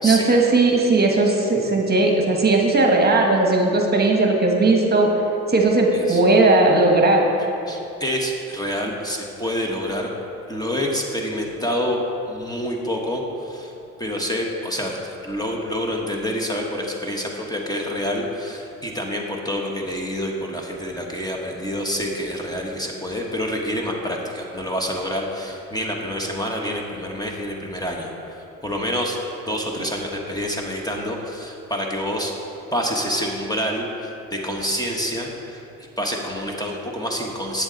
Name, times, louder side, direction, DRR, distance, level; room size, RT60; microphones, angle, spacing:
voice 1, 0.0-5.1 5.5-7.2, right 2 dB, 35° right, 1 dB, 1.3 m, -17 dB
voice 2, 7.7-10.1 10.5-12.0 12.3-13.7 14.0-29.2 29.4-32.3 32.7-35.6 36.0-37.6, equal, 15° left, 0 dB, 1.3 m, -27 dB
11.0 x 8.1 x 4.0 m, 2.8 s
cardioid pair, 90°, 30 cm